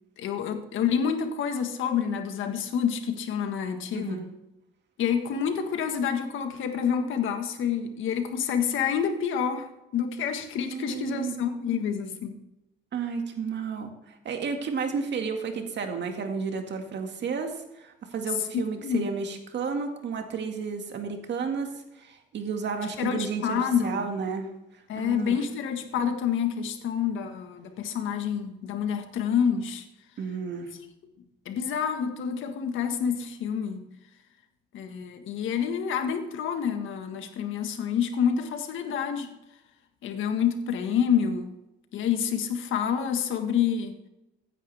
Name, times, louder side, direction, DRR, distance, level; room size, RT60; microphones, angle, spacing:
voice 1, 0.2-4.3 5.0-12.4 18.5-19.1 23.0-24.1 24.9-29.8 31.4-33.9 34.7-39.3 40.0-41.5 41.9-44.0, left 7 dB, 80° left, 7 dB, 1.6 m, -28 dB
voice 2, 3.9-4.3 10.7-11.3 12.9-21.7 22.0-24.5 25.0-25.4 30.2-30.8, right 5 dB, 60° right, 4 dB, 2.1 m, -32 dB
15.5 x 9.9 x 3.5 m, 0.93 s
cardioid pair, 90°, 20 cm